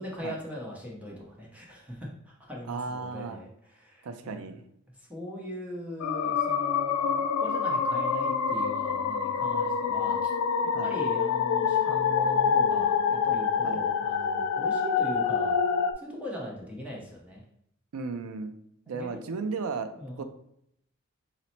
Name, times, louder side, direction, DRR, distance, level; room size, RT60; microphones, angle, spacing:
voice 1, 0.0-4.4 5.0-10.3 10.8-17.4 18.9-19.3 20.0-20.2, left 1 dB, 5° right, -3 dB, 0.7 m, -40 dB
voice 2, 2.7-3.4 4.0-4.6 10.7-10.9 13.6-13.8 17.9-18.5 18.9-19.9 20.2-20.3, right 4 dB, 75° right, 9 dB, 0.4 m, -35 dB
sound 1, 6.0-15.9, left 6 dB, 80° left, 0.3 m, -26 dB
4.1 x 2.0 x 4.2 m, 0.72 s
head